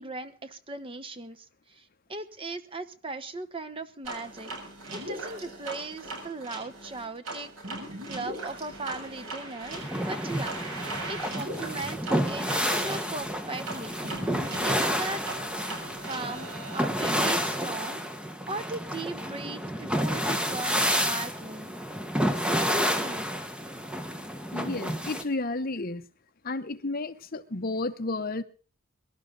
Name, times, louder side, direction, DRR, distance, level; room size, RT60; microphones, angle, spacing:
voice 1, 0.0-4.5 4.9-14.0 14.6-15.3 16.1-18.0 18.5-21.8 22.5-23.3, right 2 dB, 25° right, 1.1 m, -38 dB
sound 1, 4.0-16.9, right 2 dB, 75° right, 7.0 m, -39 dB
sound 2, 9.7-25.2, equal, 5° right, 1.4 m, -30 dB
voice 2, 24.5-26.0 26.4-28.4, left 2 dB, 40° left, 0.9 m, -32 dB
23.5 x 12.0 x 4.0 m
head